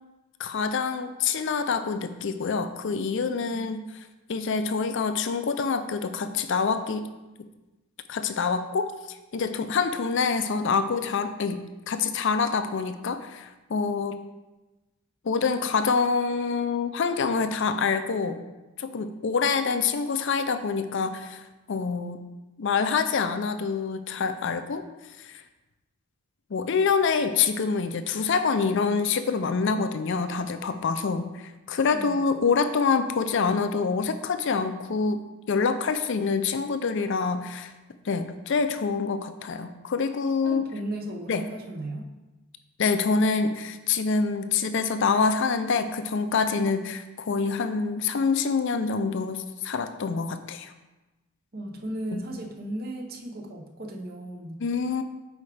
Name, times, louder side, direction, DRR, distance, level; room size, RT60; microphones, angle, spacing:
voice 1, 0.4-3.8 4.3-7.1 8.1-14.2 15.2-18.4 18.8-22.3 22.6-24.9 25.2-25.4 26.5-31.3 31.7-35.2 35.5-37.7 38.0-40.6 41.3-41.4 42.8-50.7 52.1-52.2 54.6-55.0, left 5 dB, 55° left, 10 dB, 0.4 m, -26 dB
voice 2, 31.9-32.2 40.4-42.0 51.5-54.6, right 1 dB, 45° right, 2 dB, 0.8 m, -35 dB
8.4 x 4.7 x 3.3 m, 1.1 s
head